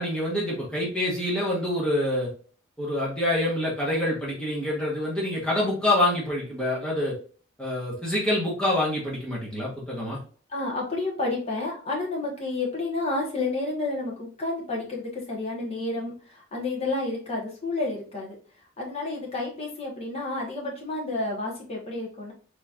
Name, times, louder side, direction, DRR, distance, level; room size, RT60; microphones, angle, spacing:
voice 1, 0.0-2.3 2.8-7.1 7.6-10.2, left 1 dB, 5° left, -6 dB, 1.1 m, -26 dB
voice 2, 10.5-18.4 18.8-22.3, left 2 dB, 30° left, -2 dB, 1.2 m, -30 dB
4.0 x 3.1 x 2.4 m, 0.41 s
head